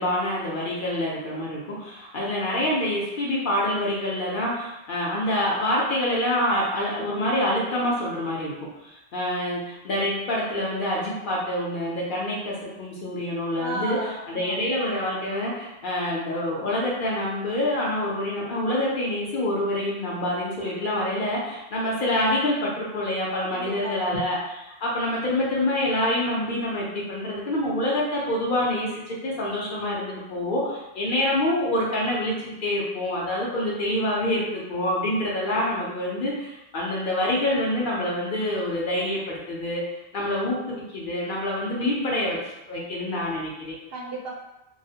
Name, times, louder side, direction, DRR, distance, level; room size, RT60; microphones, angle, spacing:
voice 1, 0.0-8.5 8.8-14.0 14.3-24.4 24.8-39.8 40.1-43.8, left 1 dB, 60° left, -4 dB, 0.7 m, -26 dB
voice 2, 13.6-14.6 23.5-24.3 43.9-44.3, right 1 dB, 70° right, -2 dB, 0.7 m, -34 dB
2.3 x 2.1 x 2.7 m, 0.94 s
omnidirectional pair, 1.1 m